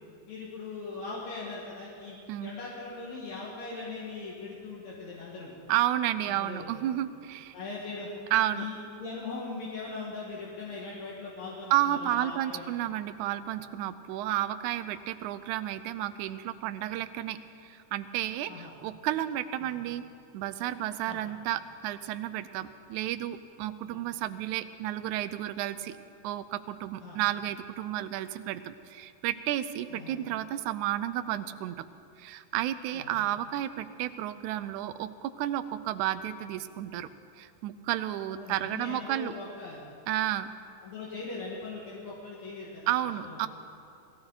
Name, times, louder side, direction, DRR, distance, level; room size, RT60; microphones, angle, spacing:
voice 1, 0.3-5.6 6.3-6.7 7.5-8.1 8.5-12.8 18.5-18.7 19.6-19.7 21.0-21.2 23.8-24.0 27.0-27.2 29.9-30.2 32.9-33.1 38.3-39.8 40.8-42.9 43.2-43.4, left 3 dB, 70° left, -5 dB, 3.0 m, -40 dB
voice 2, 5.7-7.5 8.3-8.6 11.7-17.4 17.6-20.0 20.3-25.9 26.2-31.9 32.2-37.1 37.4-39.3 40.1-40.5 42.9-43.5, right 13 dB, 90° right, 12 dB, 2.0 m, -32 dB
19.0 x 14.5 x 4.0 m, 2.6 s
omnidirectional pair, 3.3 m